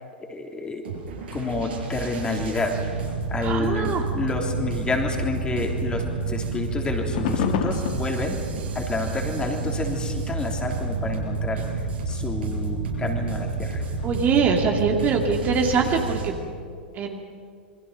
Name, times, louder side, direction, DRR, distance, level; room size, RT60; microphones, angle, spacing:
voice 1, 0.3-0.8 1.3-2.7 3.3-8.4 8.7-11.6 12.1-13.8, left 3 dB, 15° left, 2 dB, 3.3 m, -29 dB
sound 1, 0.9-16.3, right 4 dB, 70° right, 6.5 m, -29 dB
voice 2, 3.4-4.0 14.0-16.3 17.0-17.2, right 5 dB, 30° right, 2 dB, 2.4 m, -23 dB
sound 2, 7.1-12.7 13.2-15.0 15.7-15.8, left 8 dB, 55° left, 1.9 m, -33 dB
27.5 x 22.5 x 5.8 m, 2.3 s
figure-of-eight pair, 95°, 6 cm